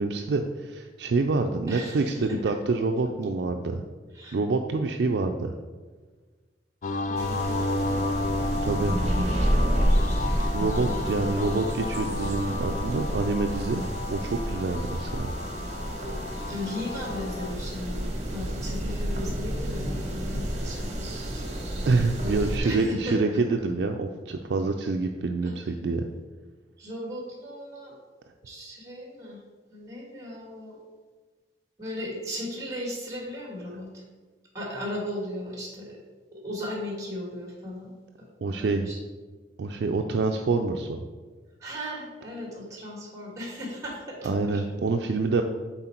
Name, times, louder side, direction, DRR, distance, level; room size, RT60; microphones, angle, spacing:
voice 1, 0.0-3.8 4.3-5.5 8.6-9.0 10.5-15.3 21.9-26.0 38.4-38.9 39.6-41.1 44.2-45.4, right 3 dB, 70° right, 4 dB, 0.4 m, -27 dB
voice 2, 1.7-2.5 4.1-4.4 7.1-8.1 10.4-11.7 16.5-21.5 22.6-23.2 25.4-25.7 26.8-27.9 28.4-29.4 29.7-30.8 31.8-34.0 34.5-36.0 36.3-37.9 38.2-38.3 38.5-39.0 41.6-44.6, left 1 dB, 20° right, -1 dB, 1.5 m, -37 dB
sound 1, 6.8-17.5, left 2 dB, 45° left, 0.5 m, -33 dB
sound 2, 7.1-22.6, equal, 40° right, 1.2 m, -29 dB
7.7 x 4.3 x 4.4 m, 1.4 s
head